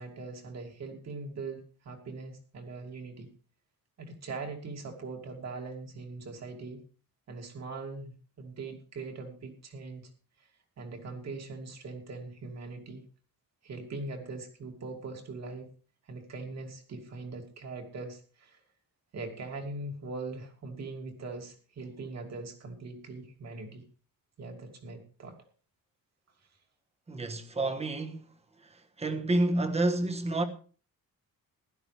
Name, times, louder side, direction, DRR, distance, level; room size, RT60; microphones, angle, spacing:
voice 1, 0.0-3.3 4.0-6.8 7.3-10.1 10.4-10.5 10.8-13.0 13.6-15.7 16.0-18.6 19.1-23.8 24.4-25.4, right 3 dB, 50° right, 2.6 m, -41 dB
voice 2, 27.1-28.3 29.0-30.4, right 2 dB, 20° right, 1.2 m, -29 dB
16.0 x 12.0 x 3.4 m
wide cardioid pair, 175°, 35 cm